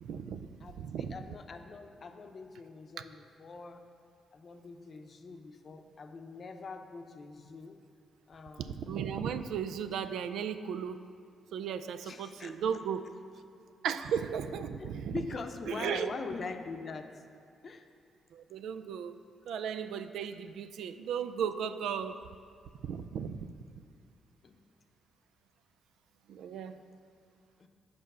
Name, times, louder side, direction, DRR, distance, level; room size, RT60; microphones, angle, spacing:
voice 1, 0.0-0.5 0.8-1.1 8.6-11.0 11.5-13.1 13.8-15.1 15.7-16.1 18.3-19.2 19.5-22.2 22.8-23.4 26.3-26.8, right 7 dB, 80° right, 10 dB, 0.3 m, -35 dB
voice 2, 0.6-3.8 4.3-7.8 8.3-8.8 12.0-12.6 14.8-17.2 17.6-17.9 24.4-24.6 26.5-26.6 27.6-27.7, left 4 dB, 55° left, 6 dB, 0.7 m, -43 dB
7.9 x 5.1 x 5.5 m, 2.3 s
supercardioid pair, 60°, 0 cm